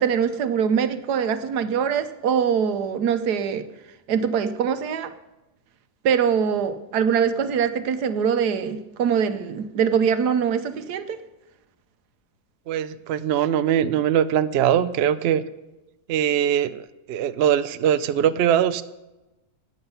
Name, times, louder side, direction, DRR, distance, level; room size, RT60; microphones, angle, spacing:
voice 1, 0.0-3.7 4.1-5.1 6.0-11.2, right 7 dB, 90° right, 10 dB, 1.4 m, -23 dB
voice 2, 12.7-15.4 16.1-18.8, right 10 dB, 65° right, 13 dB, 0.6 m, -21 dB
13.5 x 9.1 x 5.5 m, 1.0 s
omnidirectional pair, 1.7 m